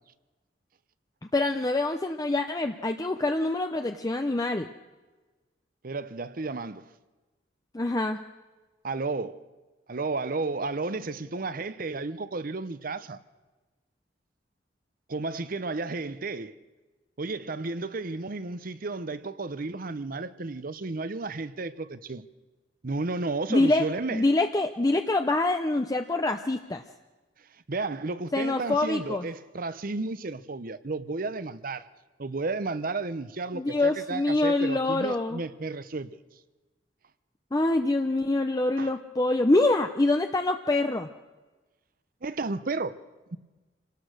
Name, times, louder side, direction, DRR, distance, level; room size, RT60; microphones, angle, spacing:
voice 1, 1.3-4.7 7.7-8.2 23.5-26.8 28.3-29.2 33.5-35.4 37.5-41.1, left 2 dB, 20° left, 0.6 m, -25 dB
voice 2, 5.8-6.9 8.8-9.4 9.9-13.2 15.1-16.5 17.2-22.2 22.8-24.2 27.7-31.9 32.2-36.1 38.8-38.9 42.2-43.0 43.3-43.4, right 3 dB, 50° right, 0.8 m, -32 dB
26.5 x 18.5 x 6.5 m
head